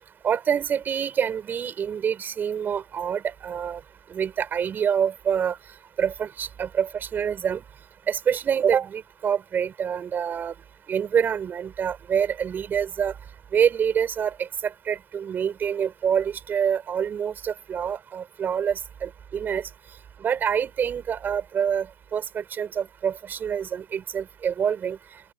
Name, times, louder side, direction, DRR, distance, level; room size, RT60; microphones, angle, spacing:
voice 1, 0.2-3.8 4.1-5.6 6.0-7.6 8.1-10.5 10.9-13.1 13.5-19.6 20.2-21.9 22.1-25.0, right 8 dB, 10° right, 7.7 m, -26 dB
open air
hypercardioid pair, 165°, 19 cm